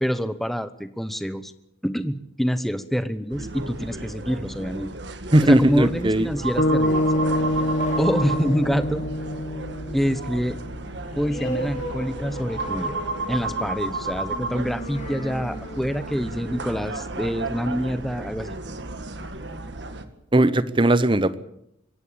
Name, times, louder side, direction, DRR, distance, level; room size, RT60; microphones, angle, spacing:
voice 1, 0.0-1.5 1.8-4.9 5.4-7.0 7.6-7.7 8.0-9.0 9.9-10.6 11.1-13.0 13.3-18.6, equal, ahead, 11 dB, 1.0 m, -26 dB
sound 1, 3.3-20.0, right 3 dB, 70° right, 1.8 m, -33 dB
voice 2, 5.3-6.3 20.3-21.4, right 1 dB, 25° right, 15 dB, 0.9 m, -18 dB
sound 2, 6.6-10.8, left 1 dB, 65° left, 1.0 m, -25 dB
sound 3, 6.7-17.8, equal, 40° left, 4.1 m, -37 dB
25.0 x 14.5 x 8.7 m, 0.80 s
head